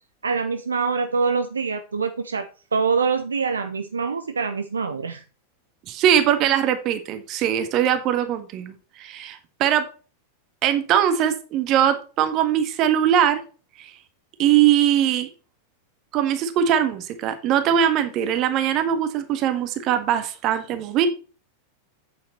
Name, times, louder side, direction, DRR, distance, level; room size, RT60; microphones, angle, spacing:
voice 1, 0.2-2.5 2.7-5.2, right 5 dB, 75° right, 8 dB, 0.6 m, -24 dB
voice 2, 5.9-9.9 10.6-13.4 13.8-14.0 14.4-15.3 16.1-21.1, right 10 dB, 35° right, 9 dB, 1.5 m, -21 dB
8.7 x 6.9 x 4.2 m, 0.35 s
figure-of-eight pair, 90°, 0 cm